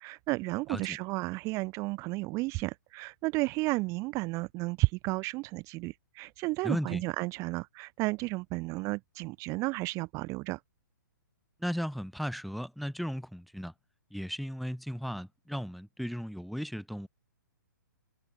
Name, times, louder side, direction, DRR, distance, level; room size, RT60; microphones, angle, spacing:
voice 1, 0.0-10.6, right 23 dB, 30° right, 4.6 m, -32 dB
voice 2, 6.6-7.0 11.6-13.7 14.1-17.1, equal, ahead, 8.0 m, -35 dB
figure-of-eight pair, 125°, 11 cm